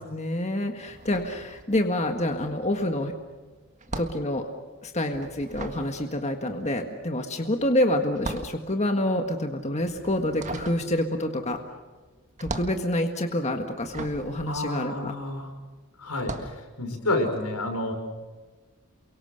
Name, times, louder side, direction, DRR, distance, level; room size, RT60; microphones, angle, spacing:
voice 1, 0.0-3.1 4.0-4.5 4.8-11.6 12.4-15.1, left 1 dB, 30° left, 4 dB, 1.7 m, -27 dB
sound 1, 0.9-2.1 2.4-15.5 16.1-16.6, right 2 dB, 35° right, 1.8 m, -39 dB
voice 2, 14.5-15.5 16.0-17.9, left 2 dB, 90° left, 4 dB, 5.6 m, -29 dB
29.0 x 23.5 x 6.6 m, 1.3 s
head